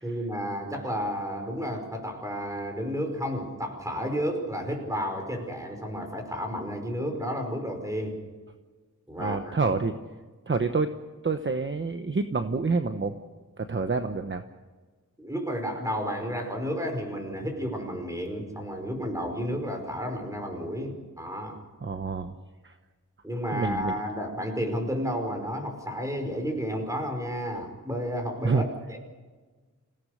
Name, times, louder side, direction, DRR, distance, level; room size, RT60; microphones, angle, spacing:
voice 1, 0.0-8.2 9.1-9.7 15.2-21.6 23.2-29.0, equal, 10° right, 3 dB, 5.2 m, -32 dB
voice 2, 9.2-9.9 10.5-10.9 11.2-13.2 13.6-14.4 21.8-22.3 22.6-22.7 23.5-23.9 28.4-28.6, right 4 dB, 40° right, 8 dB, 1.0 m, -27 dB
27.0 x 17.0 x 6.5 m, 1.4 s
wide cardioid pair, 115°, 31 cm